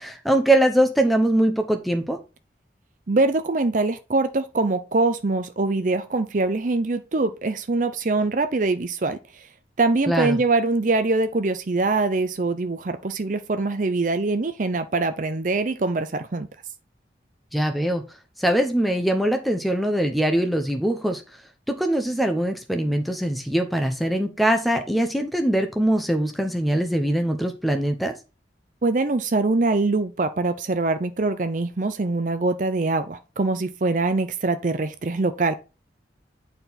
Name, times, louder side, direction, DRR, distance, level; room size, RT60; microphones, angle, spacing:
voice 1, 0.0-2.2 10.1-10.4 17.5-18.0 18.4-21.2 21.7-28.1, right 1 dB, ahead, 0.8 m, -22 dB
voice 2, 3.1-9.4 9.8-16.5 28.8-35.5, right 3 dB, 45° right, 0.6 m, -23 dB
9.0 x 4.4 x 4.0 m
head